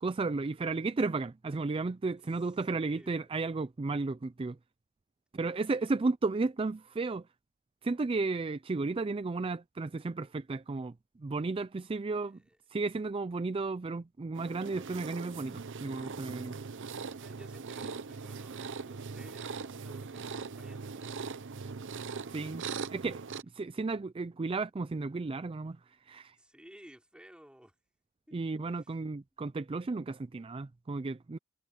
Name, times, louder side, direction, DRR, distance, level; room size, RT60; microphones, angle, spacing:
voice 1, 0.0-4.6 5.3-7.3 7.8-12.4 12.7-16.6 22.3-22.6 22.9-23.2 23.5-25.8 26.0-26.4 28.3-31.4, right 3 dB, 25° right, 0.4 m, -33 dB
voice 2, 2.7-3.3 5.7-5.9 12.1-12.6 17.1-21.2 24.3-24.5 26.4-27.7 28.3-28.4 28.7-29.1, equal, 5° right, 4.3 m, -56 dB
sound 1, 14.3-23.4, right 5 dB, 55° right, 0.7 m, -41 dB
head